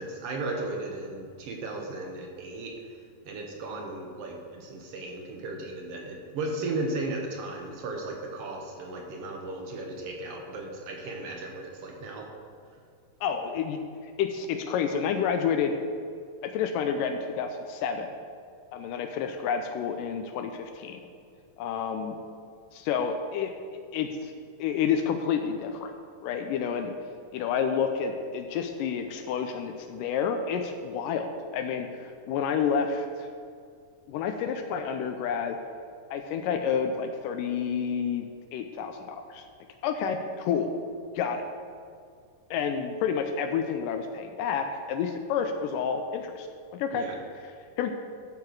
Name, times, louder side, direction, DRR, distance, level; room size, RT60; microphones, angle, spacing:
voice 1, 0.0-12.3 46.9-47.2, right 2 dB, 65° right, 1 dB, 1.6 m, -36 dB
voice 2, 13.2-13.8 14.2-15.8 16.4-18.1 18.7-21.0 21.6-22.2 22.7-24.3 24.6-25.9 26.2-26.9 27.3-33.3 34.1-35.6 36.1-38.3 38.5-39.5 39.8-40.7 41.2-41.5 42.5-46.5 46.7-47.1 47.8-47.9, left 7 dB, 85° left, 6 dB, 2.1 m, -29 dB
13.0 x 6.8 x 4.6 m, 2.2 s
omnidirectional pair, 3.9 m